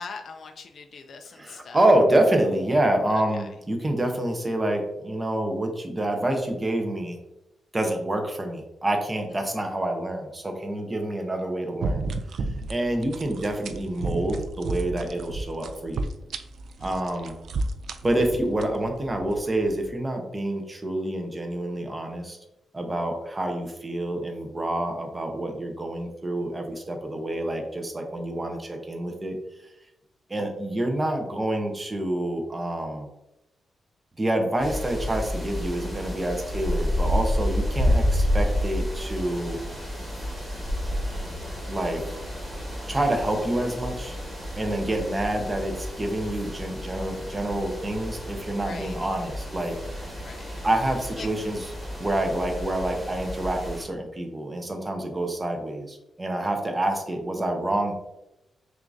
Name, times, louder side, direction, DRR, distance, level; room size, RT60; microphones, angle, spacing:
voice 1, 0.0-1.9 3.1-3.5 9.4-9.5 12.8-13.0 16.8-17.1 44.7-45.0 48.6-49.1 50.2-50.6 51.2-51.3, left 5 dB, 50° left, 5 dB, 0.3 m, -42 dB
voice 2, 1.4-7.2 7.7-12.1 12.7-16.1 16.8-17.4 18.0-22.4 22.7-29.4 30.3-33.1 34.2-39.6 41.0-41.3 41.7-42.2 42.9-44.2 44.6-50.0 50.6-51.6 52.0-57.9, right 1 dB, 15° right, 3 dB, 0.6 m, -27 dB
sound 1, 11.8-19.9, right 3 dB, 60° right, 0.3 m, -33 dB
sound 2, 34.6-53.8, equal, 5° left, 1.2 m, -30 dB
6.2 x 2.4 x 2.6 m, 0.90 s
wide cardioid pair, 170°, 0 cm